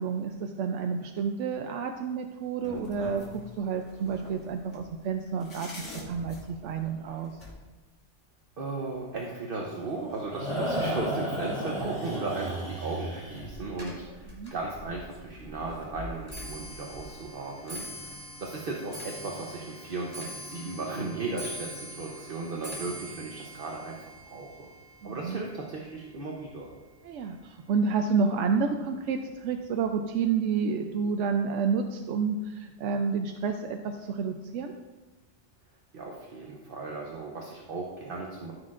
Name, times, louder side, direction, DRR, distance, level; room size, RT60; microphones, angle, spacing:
voice 1, 0.0-7.3 14.3-14.5 25.0-25.4 27.0-34.7, right 5 dB, 85° right, 5 dB, 0.9 m, -30 dB
sound 1, 2.6-7.6 8.9-9.0 9.3-9.4 9.8-10.6 10.9-11.7 12.7-12.8 13.2-17.3 17.6-18.3, left 2 dB, 80° left, 1.9 m, -46 dB
voice 2, 8.6-24.7 25.0-26.7 35.9-38.5, right 3 dB, 50° right, -1 dB, 1.0 m, -36 dB
sound 2, 9.7-13.6, equal, 35° left, 3.2 m, -33 dB
Clock, 13.7-27.1 27.4-27.9 28.7-28.8 29.1-29.5 29.7-29.8, equal, 20° left, 2.4 m, -44 dB
13.5 x 6.4 x 2.5 m, 1.2 s
omnidirectional pair, 1.2 m